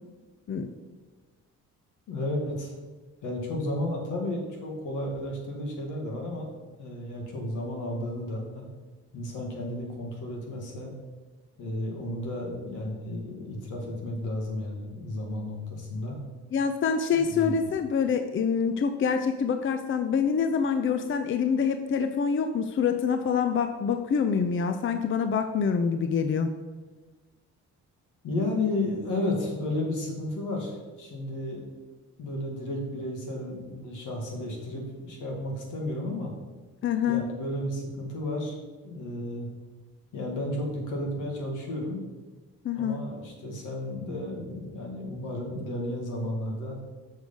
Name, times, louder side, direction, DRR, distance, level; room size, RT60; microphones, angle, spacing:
voice 1, 2.1-2.8 3.2-6.5 6.8-8.7 9.1-10.9 11.6-16.2 17.1-17.5 28.2-31.6 32.2-36.3 37.0-38.6 38.8-39.5 40.1-42.0 42.8-46.8, left 1 dB, 80° left, 1 dB, 2.2 m, -33 dB
voice 2, 16.5-26.5 36.8-37.2 42.6-43.0, left 6 dB, 40° left, 8 dB, 0.6 m, -26 dB
6.4 x 6.4 x 5.3 m, 1.3 s
cardioid pair, 90°, 30 cm